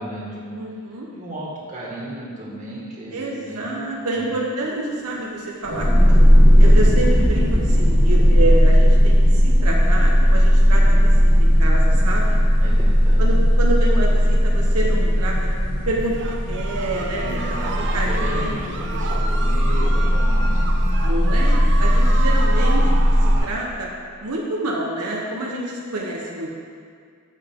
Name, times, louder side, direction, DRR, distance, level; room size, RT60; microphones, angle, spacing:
voice 1, 0.0-0.6 1.1-3.7 4.1-4.3 12.6-13.3 17.1-20.7, right 1 dB, 35° right, -5 dB, 2.0 m, -34 dB
voice 2, 0.5-1.1 3.1-6.2 6.6-12.4 13.2-15.4 15.8-16.1 16.5-18.8 21.0-22.9 23.2-23.9 24.2-26.5, right 1 dB, 85° right, -2 dB, 1.1 m, -28 dB
sound 1, 5.6-23.4, equal, 40° left, 2.4 m, -16 dB
sound 2, 16.1-23.5, right 3 dB, 55° right, 0.7 m, -32 dB
14.0 x 5.9 x 3.8 m, 2.1 s
head